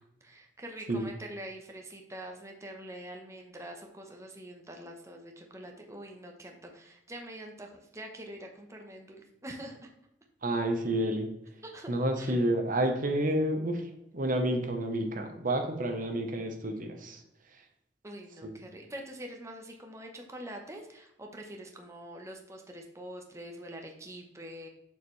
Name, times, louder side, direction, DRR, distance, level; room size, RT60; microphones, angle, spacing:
voice 1, 0.0-9.9 11.6-11.9 12.2-12.4 18.0-24.7, right 1 dB, 15° right, 2 dB, 1.0 m, -45 dB
voice 2, 10.4-11.3 11.9-17.2 18.4-18.5, right 1 dB, 50° right, 5 dB, 1.0 m, -30 dB
6.9 x 6.6 x 3.2 m, 0.82 s
head